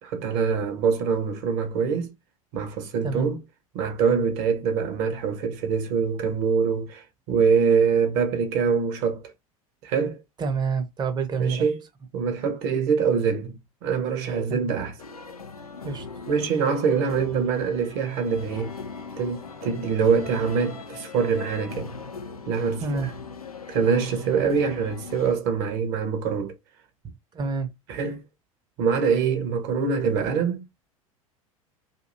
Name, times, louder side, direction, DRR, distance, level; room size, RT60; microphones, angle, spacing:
voice 1, 0.0-2.1 2.5-3.4 3.7-9.2 9.8-10.2 11.4-11.8 12.1-13.6 13.8-14.9 16.3-18.7 19.2-21.9 22.5-22.8 23.7-26.6 27.9-28.2 28.8-30.6, right 6 dB, 50° right, 0.9 m, -24 dB
voice 2, 10.4-11.7 14.5-14.7 15.8-16.1 22.8-23.1 27.3-27.7, right 4 dB, 25° right, 0.6 m, -28 dB
sound 1, 15.0-25.3, left 4 dB, 90° left, 0.5 m, -40 dB
2.8 x 2.6 x 2.5 m
figure-of-eight pair, 80°, 18 cm